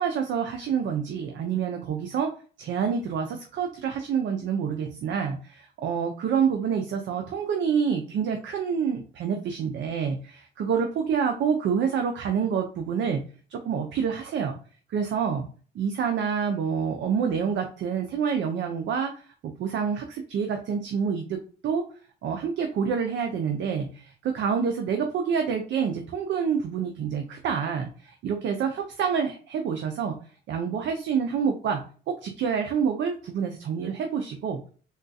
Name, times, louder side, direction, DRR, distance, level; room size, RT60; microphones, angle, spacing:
voice 1, 0.0-2.3 2.6-13.2 13.5-14.6 14.9-15.5 15.7-19.3 19.6-21.8 22.2-30.2 30.5-34.6, right 6 dB, 70° right, 4 dB, 0.5 m, -27 dB
3.6 x 2.3 x 2.6 m, 0.39 s
cardioid pair, 90°, 20 cm